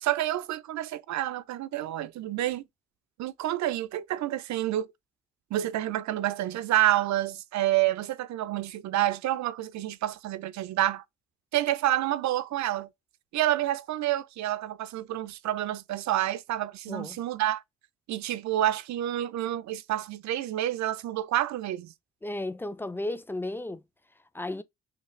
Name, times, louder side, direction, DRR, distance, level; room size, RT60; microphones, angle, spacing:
voice 1, 0.0-2.6 3.2-4.9 5.5-11.0 11.5-12.9 13.3-17.6 18.1-21.9, right 13 dB, 65° right, 0.5 m, -28 dB
voice 2, 16.9-17.2 22.2-23.8 24.3-24.6, left 1 dB, 5° left, 0.4 m, -34 dB
5.8 x 2.4 x 3.2 m
cardioid pair, 90°, 30 cm